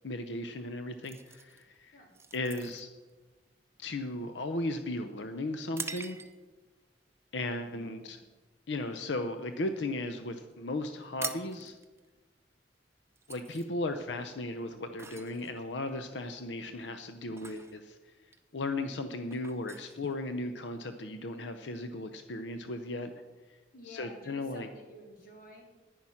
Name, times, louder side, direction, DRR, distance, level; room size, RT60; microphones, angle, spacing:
voice 1, 0.0-2.0 2.3-2.9 3.8-6.2 7.3-8.2 8.7-11.8 13.3-18.1 18.5-23.1 23.5-23.6 23.9-24.7, left 2 dB, 85° left, 8 dB, 0.7 m, -36 dB
sound 1, 1.0-6.6 7.2-7.4 7.9-8.2 8.6-9.7 10.0-10.1 10.3-10.5 10.8-20.8, right 5 dB, 15° right, 0.7 m, -46 dB
voice 2, 23.7-25.6, left 1 dB, 55° left, 0 dB, 3.2 m, -51 dB
10.5 x 10.0 x 5.7 m, 1.3 s
head